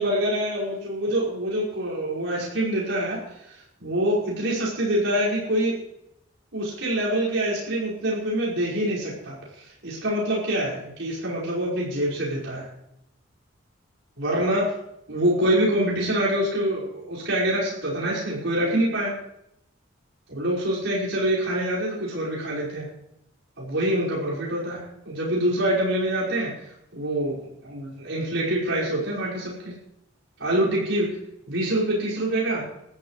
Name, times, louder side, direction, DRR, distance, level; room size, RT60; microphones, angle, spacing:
voice 1, 0.0-5.7 6.5-9.4 9.8-12.7 14.2-14.7 15.1-19.2 20.3-22.9 23.6-26.5 26.9-27.4 27.6-29.7 30.4-31.1 31.5-32.7, right 1 dB, 75° right, -7 dB, 5.4 m, -25 dB
21.5 x 13.5 x 3.2 m, 0.80 s
head